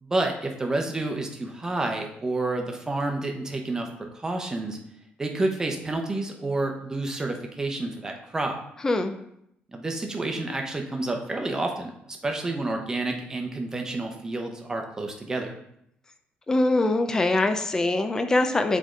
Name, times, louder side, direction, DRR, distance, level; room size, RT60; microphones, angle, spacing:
voice 1, 0.0-4.8 5.2-8.6 9.7-15.5, right 2 dB, 15° right, 3 dB, 0.8 m, -29 dB
voice 2, 8.8-9.2 16.5-18.8, left 2 dB, 15° left, 7 dB, 0.4 m, -23 dB
7.3 x 3.6 x 3.8 m, 0.75 s
cardioid pair, 140°, 4 cm